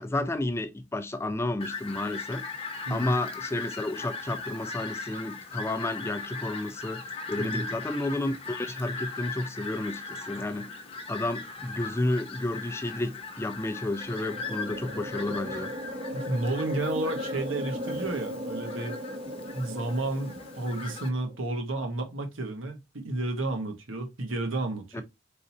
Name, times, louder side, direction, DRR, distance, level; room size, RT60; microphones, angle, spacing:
voice 1, 0.0-2.5 2.9-10.8 11.1-15.7 24.9-25.0, left 2 dB, 15° left, 0.3 m, -31 dB
Fowl, 1.6-21.1, left 4 dB, 30° left, 0.8 m, -39 dB
sound 1, 13.7-21.4, equal, 35° right, 0.7 m, -37 dB
voice 2, 16.1-19.0 19.5-25.0, right 2 dB, 85° right, 1.2 m, -31 dB
4.2 x 3.8 x 2.7 m
head